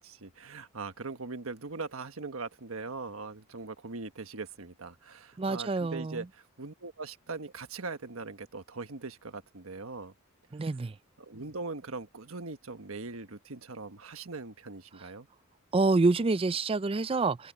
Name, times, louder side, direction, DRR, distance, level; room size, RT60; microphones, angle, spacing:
voice 1, 0.0-10.1 10.6-10.7 11.2-15.3, right 3 dB, 80° right, 1.4 m, -41 dB
voice 2, 5.4-6.2 10.5-10.9 15.7-17.5, right 3 dB, 25° right, 0.4 m, -27 dB
head